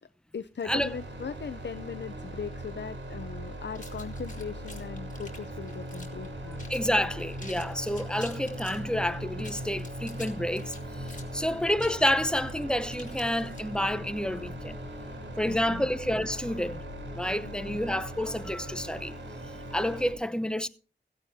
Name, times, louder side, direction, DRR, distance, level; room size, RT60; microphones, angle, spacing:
voice 1, 0.0-6.7 9.4-9.5 10.2-10.3 11.3-11.5 14.7-15.9 17.4-17.8, left 6 dB, 75° left, 0.6 m, -40 dB
sound 1, 0.7-20.1, equal, 85° right, 3.8 m, -39 dB
sound 2, 3.7-6.3 6.6-6.9 7.2-8.8 9.3-13.9, left 2 dB, 45° left, 3.6 m, -48 dB
voice 2, 6.7-10.7 11.0-14.8 15.4-16.8 17.1-19.1 19.7-20.7, equal, 5° left, 0.8 m, -29 dB
16.5 x 15.5 x 2.7 m
wide cardioid pair, 65°, 19 cm